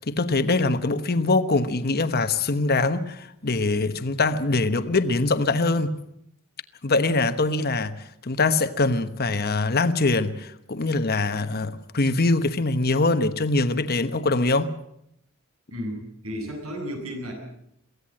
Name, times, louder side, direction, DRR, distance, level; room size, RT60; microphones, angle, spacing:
voice 1, 0.1-5.9 6.8-14.7, left 3 dB, 45° left, 1.1 m, -23 dB
voice 2, 15.7-17.3, equal, 90° right, 7.9 m, -33 dB
23.0 x 16.0 x 7.7 m
head